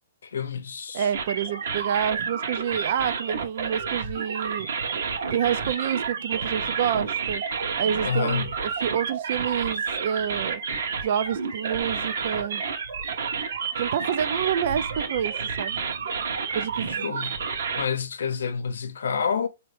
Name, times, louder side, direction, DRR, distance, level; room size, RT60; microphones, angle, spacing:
voice 1, 0.2-1.1 8.0-8.5 16.9-17.4 17.8-19.5, left 6 dB, 80° left, 0.7 m, -28 dB
voice 2, 0.9-4.7 5.3-7.4 7.8-10.6 11.0-12.6 13.8-15.8 16.5-17.1, right 9 dB, 40° right, 0.4 m, -28 dB
sound 1, 1.1-17.8, right 5 dB, 65° right, 1.1 m, -30 dB
5.4 x 2.8 x 3.3 m
hypercardioid pair, 175°, 0 cm